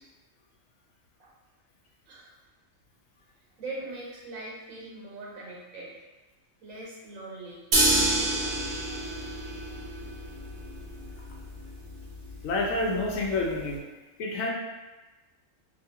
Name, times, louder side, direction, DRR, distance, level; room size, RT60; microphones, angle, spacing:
voice 1, 3.6-6.0 6.6-7.6, right 2 dB, 85° right, -5 dB, 1.3 m, -41 dB
sound 1, 7.7-13.7, right 1 dB, 60° right, 0.9 m, -29 dB
voice 2, 12.4-13.8 14.2-14.5, left 2 dB, 85° left, -1 dB, 1.0 m, -28 dB
2.9 x 2.4 x 2.8 m, 1.1 s
omnidirectional pair, 1.3 m